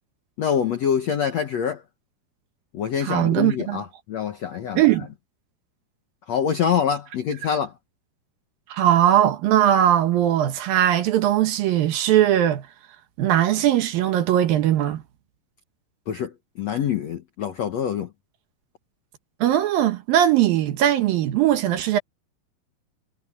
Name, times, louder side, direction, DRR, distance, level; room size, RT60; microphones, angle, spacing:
voice 1, 0.4-1.8 2.7-4.8 6.3-7.7 16.1-18.1, left 8 dB, 70° left, 1.6 m, -25 dB
voice 2, 3.0-3.8 4.8-5.1 8.7-12.7 13.2-15.0 19.4-22.0, right 11 dB, 70° right, 2.7 m, -20 dB
omnidirectional pair, 4.8 m